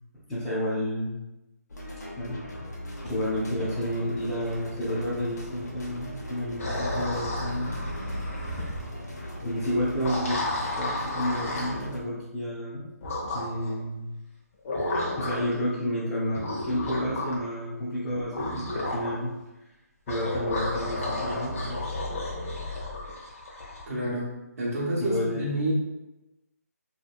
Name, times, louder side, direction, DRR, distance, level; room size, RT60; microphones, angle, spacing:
voice 1, 0.3-1.2 2.2-2.4 3.0-7.7 8.6-8.7 9.4-10.4 10.8-12.9 13.2-14.1 15.2-19.3 20.1-21.8 25.0-25.4, equal, 10° left, -9 dB, 0.5 m, -30 dB
sound 1, 1.7-12.0, left 1 dB, 80° left, 0.7 m, -39 dB
sound 2, 6.6-8.9 9.9-11.8 13.0-13.7 14.6-15.6 16.3-17.5 18.1-19.1 20.1-23.9, left 1 dB, 55° left, 0.9 m, -32 dB
voice 2, 23.9-24.3 24.6-25.7, right 1 dB, 65° right, -6 dB, 0.8 m, -28 dB
2.9 x 2.7 x 2.3 m, 1.0 s
figure-of-eight pair, 155°, 9 cm